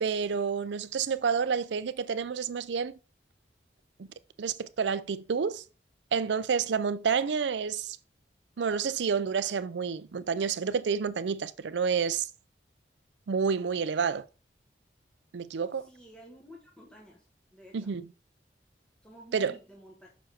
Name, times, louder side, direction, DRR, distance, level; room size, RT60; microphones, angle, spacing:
voice 1, 0.0-2.9 4.0-4.1 4.4-5.6 6.1-8.0 8.6-12.3 13.3-14.2 15.3-15.9 17.7-18.1 19.3-19.6, right 6 dB, 85° right, 0.5 m, -29 dB
voice 2, 15.7-17.2 17.5-17.9 19.0-20.1, equal, 5° left, 1.3 m, -52 dB
6.2 x 4.8 x 4.4 m
head